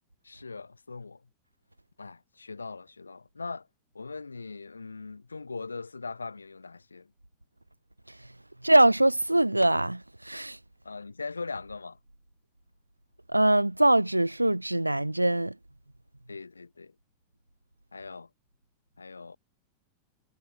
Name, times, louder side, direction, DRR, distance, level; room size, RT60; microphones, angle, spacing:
voice 1, 0.2-1.2 2.0-3.7 3.9-7.1 10.8-12.0 16.3-16.9 17.9-18.3 19.0-19.4, left 4 dB, 80° left, 5.4 m, -40 dB
voice 2, 8.6-10.6 13.3-15.5, right 1 dB, 85° right, 0.8 m, -23 dB
figure-of-eight pair, 90°, 0 cm